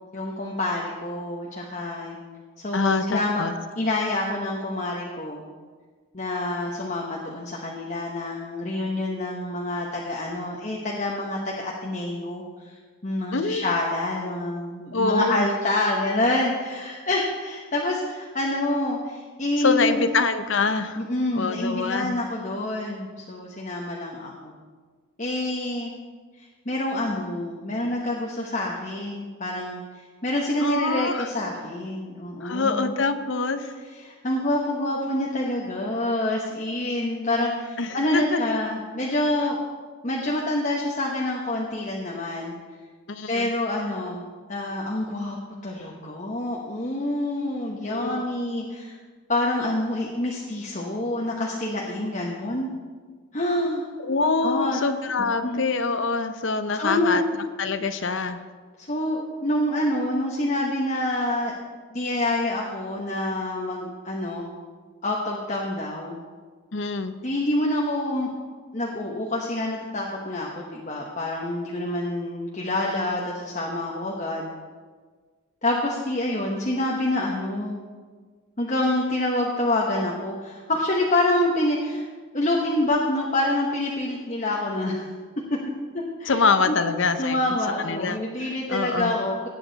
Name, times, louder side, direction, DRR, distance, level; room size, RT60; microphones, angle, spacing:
voice 1, 0.1-2.2 2.6-3.4 3.8-5.5 6.1-12.7 13.0-20.0 21.0-24.5 25.2-25.9 26.4-32.9 34.0-39.6 40.0-42.5 43.3-44.2 44.5-45.4 45.6-49.0 49.3-52.7 53.3-53.9 54.4-54.8 55.4-55.6 56.7-57.2 58.8-61.5 61.9-64.5 65.0-66.2 67.2-68.3 68.7-74.5 75.6-77.8 78.6-82.1 82.3-85.1 85.9-86.4 86.7-86.8 87.2-89.5, left 1 dB, 35° left, -2 dB, 1.1 m, -27 dB
voice 2, 2.7-3.5 13.3-13.7 14.9-15.5 19.6-21.0 21.3-22.2 30.6-31.3 32.4-33.7 37.8-38.6 43.1-43.5 47.8-48.2 54.0-57.2 57.6-58.4 66.7-67.2 86.3-87.4 87.8-88.2 88.7-89.1, left 4 dB, 65° left, 9 dB, 0.7 m, -25 dB
18.0 x 8.5 x 4.0 m, 1.5 s
head